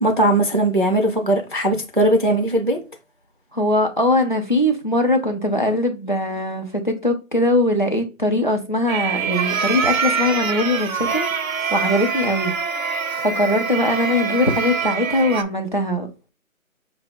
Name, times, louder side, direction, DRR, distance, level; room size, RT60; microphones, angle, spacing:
voice 1, 0.0-2.8, right 1 dB, 40° right, 0.4 m, -19 dB
voice 2, 3.5-12.5 13.2-16.3, left 1 dB, 35° left, 0.5 m, -21 dB
sound 1, 8.9-15.4, right 5 dB, 75° right, 0.7 m, -24 dB
5.8 x 2.0 x 3.4 m
figure-of-eight pair, 175°, 41 cm